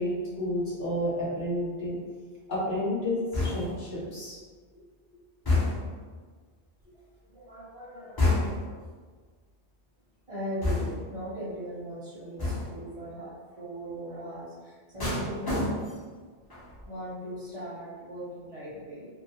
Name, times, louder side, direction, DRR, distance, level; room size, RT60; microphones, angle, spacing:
voice 1, 0.0-2.0 2.5-4.4, left 1 dB, 50° left, -8 dB, 0.9 m, -30 dB
sound 1, 3.3-3.9 5.5-6.0 8.2-8.8 10.6-11.2 12.4-12.9 15.0-16.1 16.5-16.9, left 2 dB, 35° left, 0.4 m, -28 dB
voice 2, 6.9-8.8 10.3-15.6 16.9-19.1, equal, 45° right, -11 dB, 0.5 m, -39 dB
2.2 x 2.0 x 2.7 m, 1.5 s
omnidirectional pair, 1.2 m